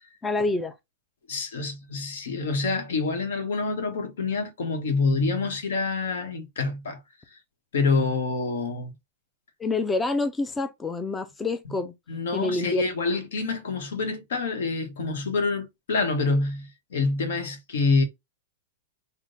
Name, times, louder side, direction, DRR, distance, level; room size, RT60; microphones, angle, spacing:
voice 1, 0.2-0.8 9.6-11.9 12.3-12.9, left 3 dB, 10° left, 0.3 m, -27 dB
voice 2, 1.3-7.0 7.3-7.4 7.7-8.9 12.1-18.0, left 3 dB, 80° left, 1.2 m, -27 dB
3.7 x 2.1 x 3.8 m
supercardioid pair, 160°, 0 cm